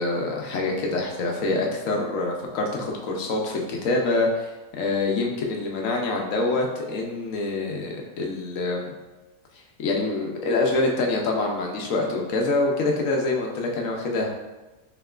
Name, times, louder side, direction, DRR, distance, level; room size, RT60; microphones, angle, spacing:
voice 1, 0.0-8.9 9.8-14.3, left 2 dB, 65° left, 0 dB, 1.0 m, -25 dB
5.7 x 3.0 x 2.4 m, 1.1 s
omnidirectional pair, 1.7 m